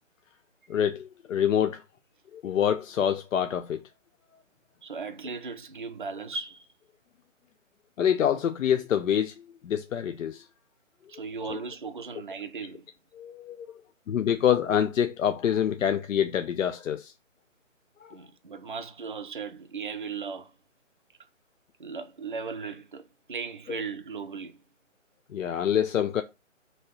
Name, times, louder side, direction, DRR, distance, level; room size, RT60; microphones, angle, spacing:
voice 1, 0.7-1.8 2.3-3.8 8.0-10.5 11.5-11.6 13.1-13.7 14.1-17.1 18.0-18.2 25.3-26.2, left 9 dB, 80° left, 0.5 m, -26 dB
voice 2, 4.8-6.7 11.1-12.9 18.1-20.5 21.8-23.0 23.3-24.6, right 5 dB, 40° right, 0.4 m, -37 dB
3.2 x 2.7 x 4.3 m
hypercardioid pair, 165°, 39 cm